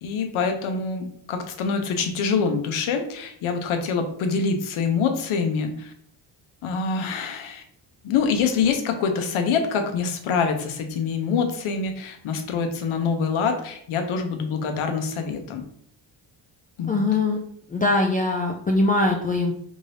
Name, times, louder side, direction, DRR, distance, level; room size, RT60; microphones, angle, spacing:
voice 1, 0.0-5.9 6.6-7.6 8.0-15.6 16.8-17.0, left 5 dB, 80° left, 5 dB, 0.8 m, -25 dB
voice 2, 16.9-17.4 17.7-19.5, left 2 dB, 20° left, 0 dB, 0.3 m, -22 dB
3.6 x 2.6 x 3.3 m, 0.66 s
cardioid pair, 95°, 48 cm